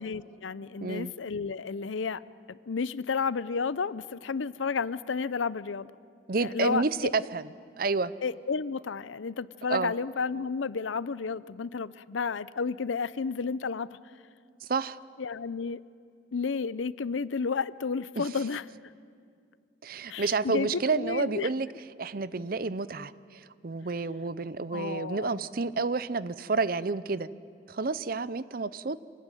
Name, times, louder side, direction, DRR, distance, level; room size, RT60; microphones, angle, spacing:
voice 1, 0.0-2.2 2.5-5.9 6.4-7.1 8.2-13.9 15.2-15.8 16.3-18.6 20.1-21.5 24.7-25.4, left 5 dB, 90° left, 18 dB, 0.6 m, -32 dB
voice 2, 0.8-1.1 6.3-7.4 7.8-8.1 9.7-9.9 14.7-15.0 18.2-18.3 19.8-21.7 22.0-23.1 23.6-27.3 27.7-29.1, right 4 dB, 50° right, 17 dB, 0.6 m, -29 dB
26.5 x 18.5 x 9.1 m, 2.2 s
head